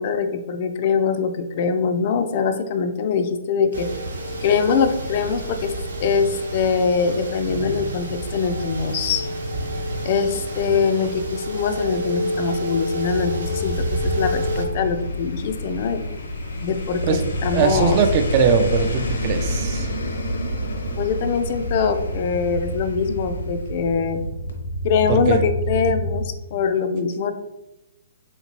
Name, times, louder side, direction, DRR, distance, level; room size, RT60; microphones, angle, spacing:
voice 1, 0.0-3.9 4.4-5.7 6.0-9.2 10.0-16.0 16.6-18.0 21.0-24.2 24.8-27.3, left 5 dB, 45° left, 8 dB, 0.4 m, -23 dB
sound 1, 3.7-14.6, equal, 90° right, 0.9 m, -28 dB
sound 2, 13.9-24.2 24.5-24.6, left 2 dB, 80° left, 0.7 m, -29 dB
sound 3, 17.0-26.2, right 1 dB, 65° right, 0.8 m, -30 dB
voice 2, 17.5-19.9 25.1-25.4, right 6 dB, 40° right, 7 dB, 0.4 m, -20 dB
3.2 x 2.8 x 3.0 m, 0.94 s
hypercardioid pair, 140°, 0 cm